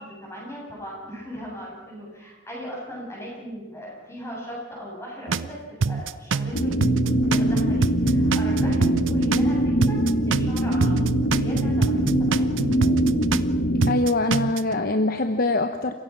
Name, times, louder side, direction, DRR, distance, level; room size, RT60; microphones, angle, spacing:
voice 1, 0.0-10.9 11.3-11.9 12.2-12.5, equal, 15° left, -4 dB, 8.0 m, -38 dB
sound 1, 5.3-5.5 5.8-9.5 9.8-13.5 13.8-14.7, right 4 dB, 75° right, 0.6 m, -25 dB
sound 2, 6.5-13.9, equal, 85° left, 1.7 m, -23 dB
voice 2, 13.8-15.9, left 2 dB, 45° left, 8 dB, 0.9 m, -23 dB
29.0 x 16.5 x 6.0 m, 1.2 s
head